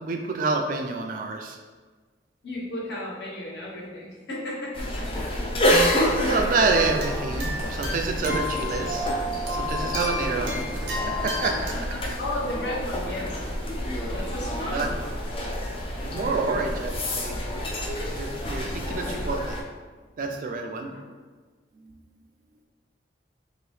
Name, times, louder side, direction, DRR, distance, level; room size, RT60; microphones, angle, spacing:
voice 1, 0.0-1.6 6.1-9.1 9.5-11.7 14.7-14.9 16.0-17.4 18.1-19.6 20.2-20.9 21.8-22.0, right 3 dB, 45° right, 3 dB, 0.3 m, -28 dB
voice 2, 2.4-5.6 11.7-13.4 14.0-15.2 20.8-21.0, left 1 dB, 70° left, -4 dB, 0.9 m, -34 dB
sound 1, 4.7-19.6, equal, 30° left, 0.3 m, -28 dB
sound 2, 6.7-11.7, equal, 75° right, 0.7 m, -33 dB
2.9 x 2.7 x 3.1 m, 1.4 s
head